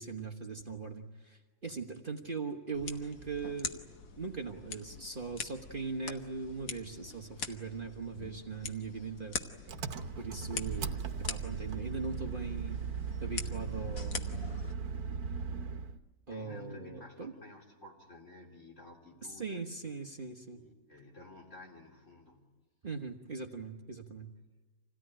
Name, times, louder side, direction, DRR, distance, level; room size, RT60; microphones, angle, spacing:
voice 1, 0.0-3.8 4.2-9.4 10.1-12.9 13.2-14.6 16.3-17.3 19.2-20.6 22.8-24.3, right 4 dB, 35° right, 3 dB, 1.4 m, -40 dB
sound 1, 2.7-14.7, left 5 dB, 85° left, 1.8 m, -44 dB
Engine, 9.7-16.0, right 5 dB, 75° right, 1.5 m, -38 dB
voice 2, 16.3-19.6 20.4-22.5, left 2 dB, 50° left, -2 dB, 4.3 m, -52 dB
27.0 x 17.5 x 10.0 m, 1.3 s
omnidirectional pair, 1.6 m